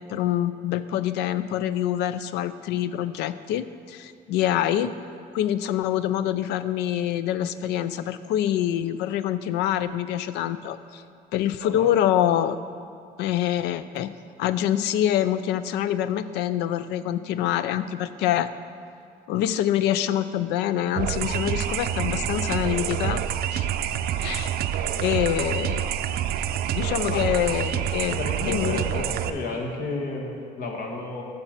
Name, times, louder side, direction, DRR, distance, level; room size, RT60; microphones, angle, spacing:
voice 1, 0.1-4.9 5.3-11.0 11.3-12.6 13.2-14.1 14.4-18.5 19.3-23.2 23.5-23.7 24.2-24.6 25.0-25.9 26.7-29.0, left 11 dB, 85° left, 14 dB, 0.4 m, -25 dB
voice 2, 11.6-12.0 27.1-27.3 28.2-31.2, left 2 dB, 60° left, 0 dB, 1.6 m, -32 dB
sound 1, 21.0-29.3, right 10 dB, 65° right, 0.4 m, -27 dB
7.2 x 5.9 x 6.6 m, 2.3 s
cardioid pair, 110°, 17 cm